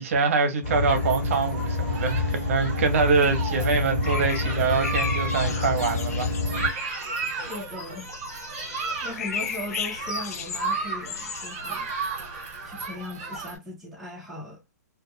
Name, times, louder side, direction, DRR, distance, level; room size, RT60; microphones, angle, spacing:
voice 1, 0.0-6.4, right 5 dB, 50° right, 0.7 m, -24 dB
sound 1, 0.6-6.7, left 3 dB, 35° left, 1.5 m, -27 dB
Human group actions, 0.9-13.6, right 4 dB, 35° right, 1.1 m, -34 dB
Blackbird in summer, 4.0-12.7, left 7 dB, 60° left, 0.4 m, -36 dB
voice 2, 7.3-8.1 9.0-11.9 12.6-14.6, left 1 dB, ahead, 0.5 m, -38 dB
2.3 x 2.2 x 2.6 m
hypercardioid pair, 165°, 9 cm